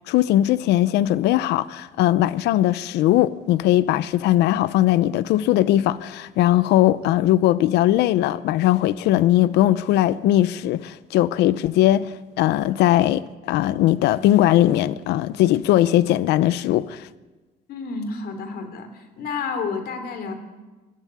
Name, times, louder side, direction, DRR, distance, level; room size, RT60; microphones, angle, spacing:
voice 1, 0.1-17.1, left 13 dB, 85° left, 0.7 m, -19 dB
voice 2, 17.7-20.3, left 4 dB, 70° left, 3.3 m, -30 dB
22.0 x 13.0 x 9.5 m
cardioid pair, 110°, 17 cm